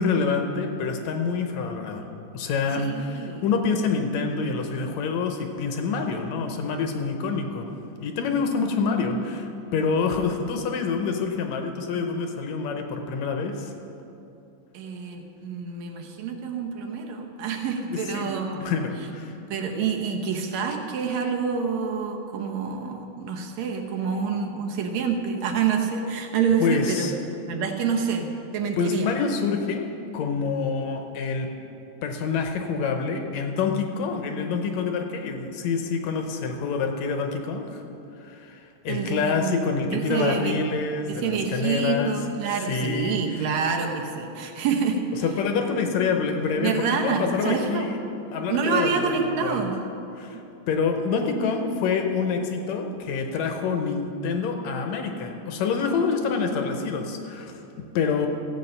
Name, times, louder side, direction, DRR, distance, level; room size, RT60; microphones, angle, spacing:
voice 1, 0.0-2.1 2.3-7.7 8.0-13.7 17.9-19.4 26.6-27.1 28.7-29.9 30.1-31.5 32.0-37.8 38.2-42.2 42.6-43.5 45.2-48.0 48.3-49.1 49.4-49.7 50.2-50.4 50.7-58.3, left 5 dB, 70° left, 5 dB, 1.8 m, -27 dB
voice 2, 2.8-3.4 14.7-18.8 19.5-27.1 27.5-29.1 38.9-39.6 39.9-40.5 41.1-45.0 46.6-47.9 48.5-49.8, right 6 dB, 70° right, 2 dB, 1.9 m, -27 dB
15.0 x 8.2 x 5.5 m, 2.8 s
omnidirectional pair, 3.8 m